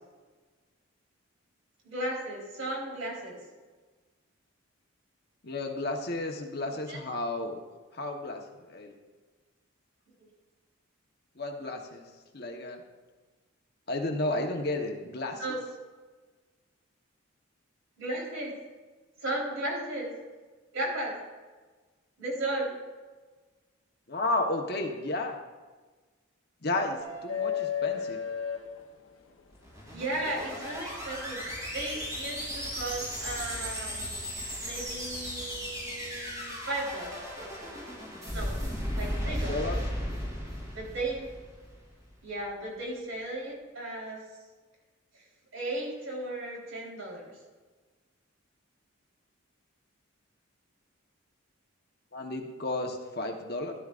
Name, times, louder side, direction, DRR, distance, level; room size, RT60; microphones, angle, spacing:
voice 1, 1.8-3.4 6.9-7.0 15.4-15.6 18.0-18.5 19.2-20.1 20.7-21.1 22.2-22.7 29.9-34.1 34.6-37.9 38.3-38.6 39.0-39.7 40.7-41.3 42.2-44.2 45.1-45.2 45.5-47.3, right 1 dB, 70° right, -3 dB, 3.9 m, -35 dB
voice 2, 5.4-7.6 7.9-8.4 8.7-8.9 11.4-12.0 12.3-12.8 13.9-15.6 24.1-25.4 26.6-28.2 39.2-39.8 52.1-53.7, left 2 dB, 50° left, 3 dB, 1.1 m, -32 dB
sound 1, 27.0-29.4 31.1-31.2 32.9-33.1, left 7 dB, 75° left, 1.0 m, -33 dB
sound 2, 29.5-41.9, equal, 15° right, 3.0 m, -36 dB
13.0 x 12.0 x 2.5 m, 1.3 s
head